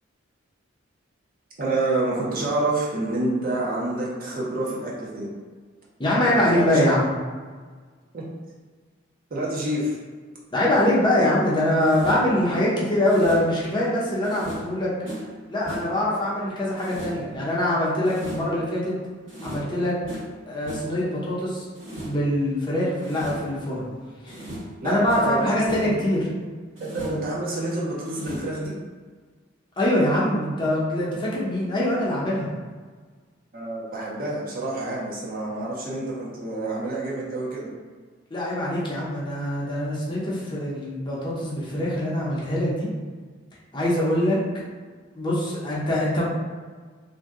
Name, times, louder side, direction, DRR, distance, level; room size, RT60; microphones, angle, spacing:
voice 1, 1.6-5.3 6.2-6.8 8.1-8.3 9.3-10.0 24.8-25.9 26.4-26.5 26.8-28.7 33.5-37.7, right 2 dB, 45° right, -5 dB, 0.7 m, -28 dB
voice 2, 6.0-7.1 10.5-14.9 15.5-19.0 19.4-20.0 20.5-21.7 22.0-23.9 24.2-24.4 24.8-26.3 29.8-32.5 38.3-42.9 43.7-44.4 45.2-46.3, left 1 dB, 25° left, -6 dB, 0.6 m, -23 dB
sound 1, 11.8-12.4 13.0-13.6 14.2-15.4 15.7-16.1 16.8-17.3 18.0-18.6 19.3-19.8 20.0-20.4 20.7-21.0 21.7-22.3 23.0-23.5 24.3-24.8 25.1-25.4 25.7-26.1 26.8-27.4 28.0-28.6, equal, 70° right, 1.2 m, -37 dB
2.6 x 2.2 x 3.5 m, 1.5 s
head